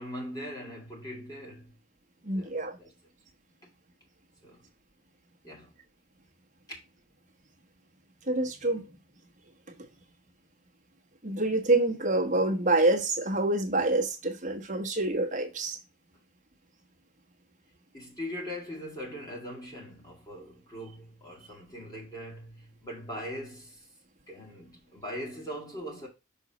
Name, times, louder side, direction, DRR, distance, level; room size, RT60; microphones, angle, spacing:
voice 1, 0.0-1.7 2.3-2.5 2.8-2.9 4.4-4.6 5.4-5.7 6.7-6.8 17.9-23.9 24.3-26.1, equal, 20° left, 2.6 m, -41 dB
voice 2, 2.2-2.8 8.3-8.8 11.2-15.8, right 2 dB, 35° right, 1.3 m, -26 dB
6.4 x 5.1 x 3.1 m
head